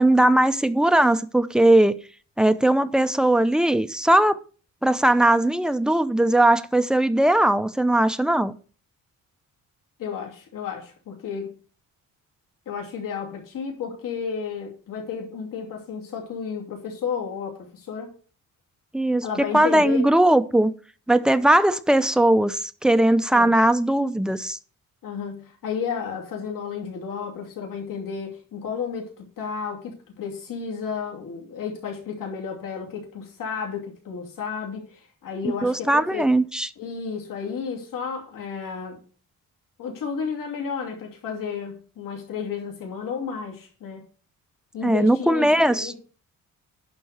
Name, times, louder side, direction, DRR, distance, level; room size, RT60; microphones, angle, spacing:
voice 1, 0.0-1.9 2.4-4.4 4.8-8.5 18.9-19.2 19.5-20.7 21.1-24.6 35.4-36.7 44.8-45.9, right 1 dB, ahead, 0.6 m, -19 dB
voice 2, 10.0-11.5 12.7-18.1 19.2-20.1 23.3-23.5 25.0-36.3 36.8-39.0 39.8-44.0 44.7-45.9, left 6 dB, 70° left, 2.8 m, -32 dB
11.0 x 4.5 x 6.5 m
cardioid pair, 110°, 34 cm